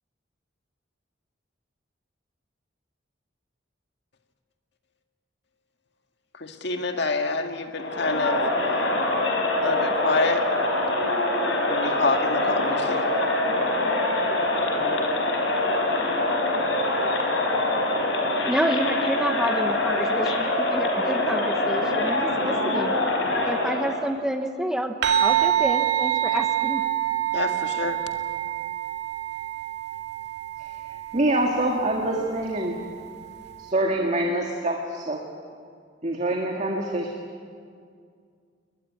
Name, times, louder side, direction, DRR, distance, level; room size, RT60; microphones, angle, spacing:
voice 1, 6.3-8.4 9.6-10.5 11.7-13.1 27.3-28.0, left 3 dB, 65° left, 5 dB, 1.9 m, -27 dB
Crowd, 7.7-24.0, left 2 dB, 85° left, 5.1 m, -24 dB
voice 2, 18.5-22.9 23.4-26.8, right 1 dB, 5° right, 5 dB, 1.1 m, -29 dB
sound 1, 25.0-33.7, right 12 dB, 65° right, 2.4 m, -27 dB
voice 3, 31.1-32.8 33.6-35.2 36.0-37.1, right 1 dB, 40° right, 1 dB, 2.0 m, -25 dB
21.5 x 21.0 x 9.9 m, 2.2 s
head